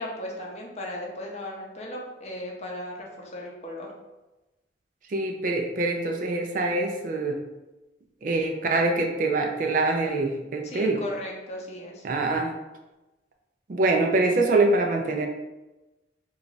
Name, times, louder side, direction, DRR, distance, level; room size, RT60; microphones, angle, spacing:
voice 1, 0.0-3.9 10.6-12.1, left 1 dB, 35° left, -2 dB, 0.6 m, -36 dB
voice 2, 5.1-7.4 8.2-11.0 12.0-12.5 13.7-15.3, right 2 dB, 45° right, 3 dB, 0.4 m, -24 dB
3.0 x 2.3 x 3.8 m, 1.0 s
head